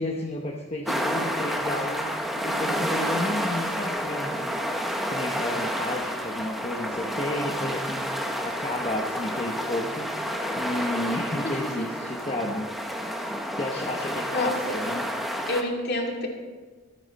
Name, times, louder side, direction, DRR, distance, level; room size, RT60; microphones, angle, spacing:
voice 1, 0.0-4.6 5.1-10.1 10.5-12.7 13.6-15.1, left 1 dB, 30° left, -1 dB, 1.0 m, -32 dB
sound 1, 0.8-15.6, equal, ahead, 1.0 m, -30 dB
voice 2, 14.3-14.8 15.5-16.3, left 1 dB, 50° left, 0 dB, 2.5 m, -28 dB
25.0 x 8.7 x 4.2 m, 1.4 s
head